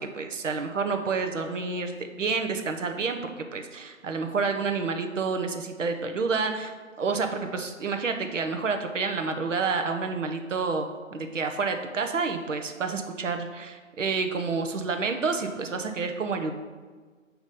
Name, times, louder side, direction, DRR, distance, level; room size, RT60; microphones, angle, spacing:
voice 1, 0.0-16.5, right 4 dB, 65° right, 5 dB, 0.8 m, -29 dB
6.6 x 3.0 x 5.2 m, 1.4 s
figure-of-eight pair, 160°, 41 cm